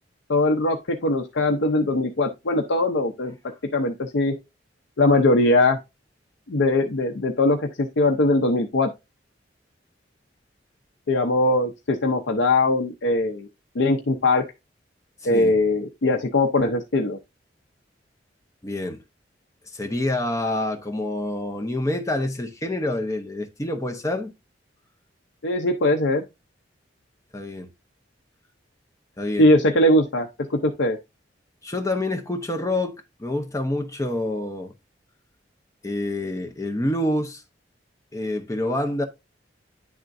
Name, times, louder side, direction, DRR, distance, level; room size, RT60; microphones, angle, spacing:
voice 1, 0.3-3.3 3.7-4.3 5.0-5.8 6.5-8.9 11.1-13.5 13.7-14.4 15.2-17.2 25.4-26.2 29.4-31.0, left 2 dB, 75° left, 0.6 m, -21 dB
voice 2, 18.6-19.0 19.7-24.3 27.3-27.7 29.2-29.5 31.6-34.7 35.8-37.4 38.1-39.0, left 1 dB, 15° left, 0.8 m, -27 dB
10.0 x 3.6 x 2.6 m
head